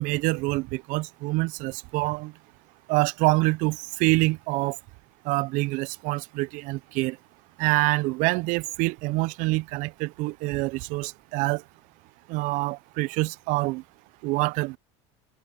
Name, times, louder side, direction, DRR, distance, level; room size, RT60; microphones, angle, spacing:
voice 1, 0.0-2.3 2.9-4.8 5.3-7.2 7.6-11.6 12.3-13.8 14.2-14.8, right 23 dB, 60° right, 0.5 m, -26 dB
supercardioid pair, 120°, 15 cm